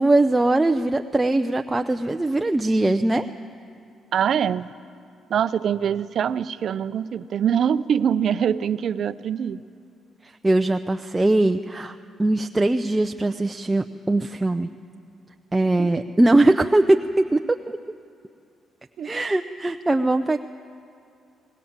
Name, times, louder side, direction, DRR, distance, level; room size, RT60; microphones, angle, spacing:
voice 1, 0.0-3.3 10.2-14.7 15.5-17.8 19.0-20.4, right 2 dB, 15° right, 6 dB, 0.6 m, -21 dB
voice 2, 4.1-4.7 5.3-9.6 15.8-15.9 19.0-19.1, right 8 dB, 60° right, 14 dB, 0.6 m, -23 dB
22.5 x 19.5 x 7.4 m, 2.5 s
cardioid pair, 90°, 0 cm